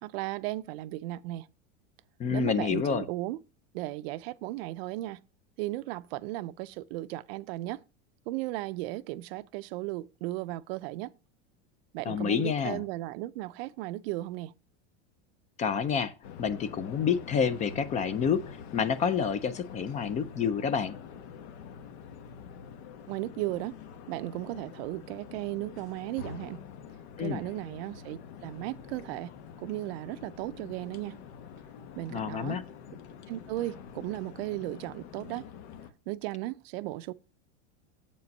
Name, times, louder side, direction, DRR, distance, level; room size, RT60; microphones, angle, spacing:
voice 1, 0.0-1.5 2.3-3.4 3.7-5.2 5.6-7.8 8.3-11.1 11.9-14.5 23.1-23.8 24.1-26.6 27.2-31.2 32.0-32.6 33.3-35.4 36.1-37.1, right 17 dB, 60° right, 0.5 m, -36 dB
voice 2, 2.2-3.0 12.1-12.8 15.6-16.1 16.4-21.0 27.2-27.4 32.1-32.6, left 7 dB, 20° left, 0.4 m, -28 dB
sound 1, 16.2-35.9, left 7 dB, 75° left, 1.2 m, -46 dB
8.0 x 5.3 x 5.3 m
supercardioid pair, 150°, 34 cm